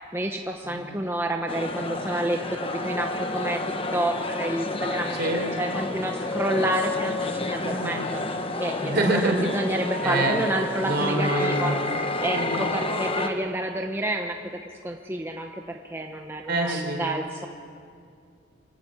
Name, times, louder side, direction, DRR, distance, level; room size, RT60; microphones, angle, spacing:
voice 1, 0.1-8.2 8.6-11.7 12.2-17.5, right 1 dB, 10° right, 3 dB, 0.9 m, -29 dB
sound 1, 1.5-13.3, left 2 dB, 30° left, 1.2 m, -30 dB
voice 2, 7.6-8.0 8.8-9.4 10.0-10.4 10.8-12.0 12.3-12.6 16.5-17.0, right 2 dB, 55° right, 3 dB, 3.9 m, -26 dB
24.0 x 15.5 x 8.8 m, 2.3 s
head